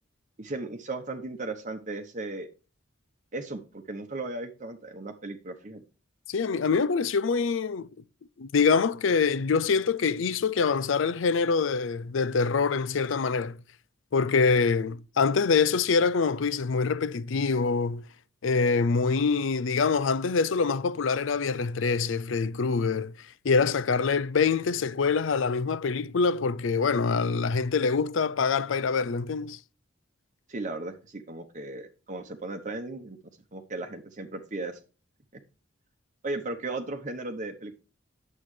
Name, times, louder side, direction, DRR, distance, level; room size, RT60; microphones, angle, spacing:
voice 1, 0.4-2.5 3.3-5.8 30.5-33.2 33.5-34.8 35.3-35.4 36.2-37.7, right 2 dB, 40° right, 0.9 m, -36 dB
voice 2, 6.3-7.9 8.4-13.6 14.1-18.0 18.4-29.6, left 5 dB, 75° left, 0.5 m, -25 dB
9.6 x 7.5 x 3.2 m
head